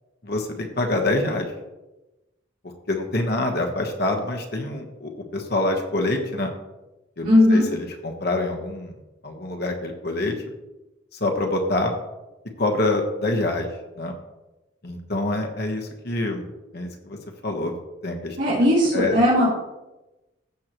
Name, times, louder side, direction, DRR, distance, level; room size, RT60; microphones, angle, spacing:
voice 1, 0.2-1.5 2.9-6.5 7.2-8.9 9.2-10.3 11.2-11.9 12.6-13.7 14.0-14.2 14.8-16.4 16.7-17.2 17.4-17.7 18.0-18.6 18.9-19.2, left 2 dB, 50° left, 3 dB, 1.2 m, -26 dB
voice 2, 7.2-7.6 18.4-19.5, left 1 dB, 60° right, -11 dB, 3.9 m, -17 dB
15.5 x 6.5 x 3.1 m, 1.0 s
head